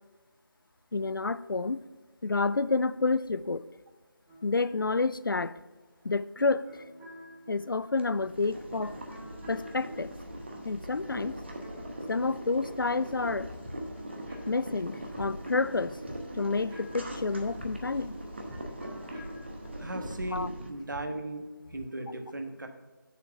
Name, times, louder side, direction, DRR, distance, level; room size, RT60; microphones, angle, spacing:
voice 1, 0.9-1.8 2.2-3.7 4.4-5.6 6.0-6.9 7.5-9.0 9.5-10.1 10.6-11.3 12.1-13.5 14.5-16.0 16.4-18.2 20.3-20.5, left 3 dB, 75° left, 17 dB, 0.4 m, -29 dB
sound 1, 4.3-13.1 13.3-21.2, equal, 5° right, 1.0 m, -50 dB
Boiling, 7.9-20.7, right 1 dB, 30° right, 0.8 m, -41 dB
voice 2, 19.8-21.4 21.7-22.7, right 1 dB, 60° right, 5 dB, 1.2 m, -37 dB
6.8 x 4.7 x 6.7 m, 1.3 s
figure-of-eight pair, 170°, 11 cm